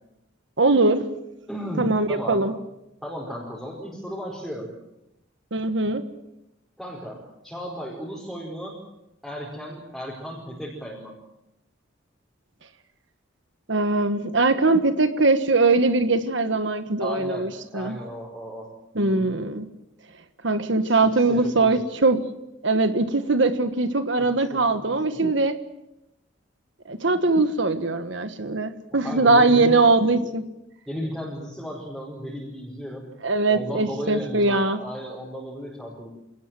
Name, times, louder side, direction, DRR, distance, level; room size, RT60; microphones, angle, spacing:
voice 1, 0.6-1.1 1.8-2.5 5.5-6.0 13.7-18.0 18.9-19.7 20.4-22.3 22.6-25.6 26.9-30.4 33.2-34.8, right 3 dB, 70° right, 10 dB, 1.4 m, -21 dB
voice 2, 1.5-2.5 3.0-4.7 6.8-8.7 9.2-11.1 17.0-18.7 19.0-19.3 20.8-21.8 24.1-25.1 29.0-29.8 30.9-33.1 33.5-36.1, equal, ahead, -5 dB, 5.0 m, -35 dB
27.0 x 19.5 x 7.8 m, 0.88 s
head